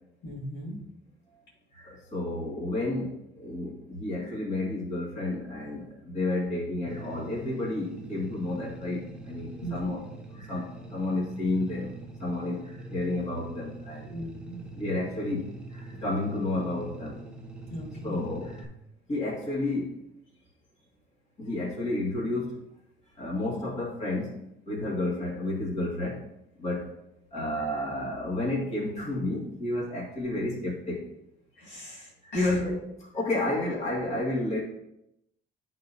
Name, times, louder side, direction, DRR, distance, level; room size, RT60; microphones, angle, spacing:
voice 1, 0.2-0.8 9.6-9.8 14.1-14.6 17.7-18.3 27.4-27.5 31.5-32.6, equal, 75° left, -4 dB, 2.1 m, -38 dB
voice 2, 1.7-14.1 14.8-17.2 18.0-18.7 19.1-20.0 21.4-22.6 23.2-24.3 24.7-26.2 26.6-26.9 27.3-31.1 32.2-34.6, left 2 dB, 35° left, -6 dB, 2.1 m, -31 dB
sound 1, 6.9-18.6, right 2 dB, 5° right, 0.7 m, -44 dB
11.0 x 3.9 x 2.7 m, 0.82 s
cardioid pair, 155°, 19 cm